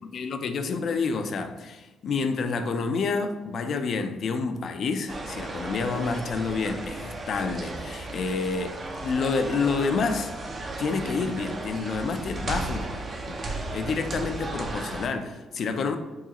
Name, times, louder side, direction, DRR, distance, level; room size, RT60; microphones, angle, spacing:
voice 1, 0.0-10.3 10.8-13.0 13.3-16.0, left 4 dB, 60° left, 7 dB, 0.4 m, -29 dB
sound 1, 5.1-15.1, right 2 dB, 45° right, 0.6 m, -35 dB
4.7 x 3.0 x 2.9 m, 1.1 s
cardioid pair, 90°, 0 cm